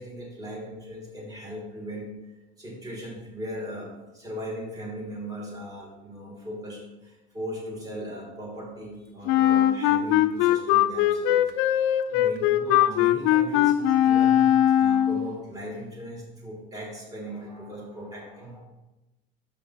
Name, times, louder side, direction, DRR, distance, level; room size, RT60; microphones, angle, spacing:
voice 1, 0.0-11.5 12.1-18.6, equal, 15° right, -2 dB, 1.7 m, -38 dB
Wind instrument woodwind instrument, 9.3-15.3, left 11 dB, 70° left, 0.4 m, -21 dB
6.5 x 5.4 x 4.0 m, 1.0 s
cardioid pair, 155°, 21 cm